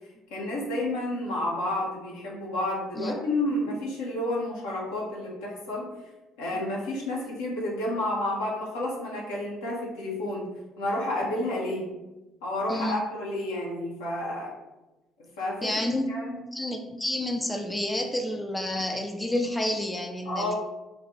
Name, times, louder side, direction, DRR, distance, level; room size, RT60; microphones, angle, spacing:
voice 1, 0.3-5.9 6.4-10.5 10.8-11.9 12.4-14.5 15.4-16.4 20.2-20.5, left 1 dB, 75° left, -4 dB, 0.9 m, -30 dB
voice 2, 12.7-13.0 15.6-16.1 16.5-20.5, left 1 dB, 10° left, 3 dB, 0.4 m, -29 dB
3.8 x 2.4 x 3.0 m, 1.0 s
figure-of-eight pair, 50°, 0 cm